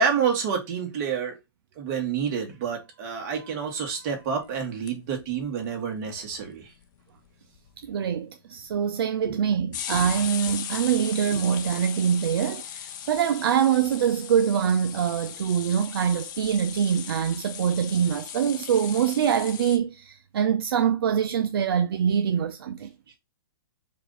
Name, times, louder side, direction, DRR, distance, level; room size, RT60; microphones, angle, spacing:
voice 1, 0.0-1.4 1.8-6.7 9.2-9.4 9.9-10.1 11.3-11.5, right 6 dB, 40° right, 1.7 m, -28 dB
sound 1, 4.6-5.4 5.7-5.8 6.0-6.1 6.2-6.8 7.2-7.3 7.6-7.9 8.7-8.8 9.7-19.8, left 9 dB, 50° left, 0.7 m, -38 dB
voice 2, 7.8-22.9, right 8 dB, 70° right, 0.5 m, -24 dB
4.7 x 2.6 x 4.0 m
hypercardioid pair, 140°, 13 cm